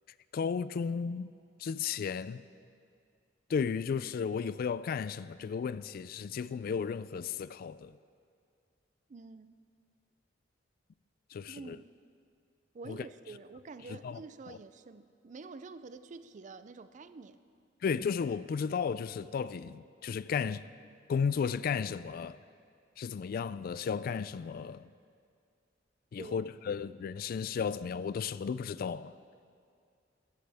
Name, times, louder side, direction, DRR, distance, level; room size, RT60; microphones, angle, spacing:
voice 1, 0.3-1.3 1.6-2.4 3.5-8.0 11.3-11.8 12.9-13.0 13.9-14.2 14.5-14.6 17.8-20.7 21.1-22.4 23.0-24.9 26.1-29.1, left 6 dB, 50° left, 0.3 m, -34 dB
voice 2, 9.1-9.6 11.5-11.9 12.7-17.4 26.2-26.4, right 4 dB, 40° right, 0.4 m, -48 dB
14.0 x 13.5 x 3.5 m
head